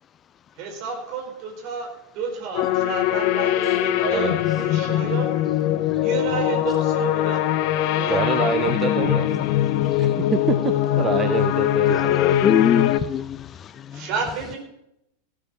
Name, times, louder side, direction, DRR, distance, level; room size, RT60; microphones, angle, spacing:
voice 1, 0.6-1.9 2.1-4.3 4.6-5.3 6.0-7.4 7.9-8.5 13.9-14.6, right 5 dB, 40° right, 3 dB, 4.6 m, -31 dB
sound 1, 2.5-13.0, left 12 dB, 45° left, 0.8 m, -22 dB
voice 2, 3.6-4.7 8.1-9.4 10.0-12.1, right 7 dB, 25° right, 11 dB, 0.7 m, -27 dB
voice 3, 11.9-14.1, left 9 dB, 25° left, 17 dB, 0.4 m, -23 dB
16.5 x 12.5 x 4.2 m, 0.82 s
figure-of-eight pair, 90°, 0 cm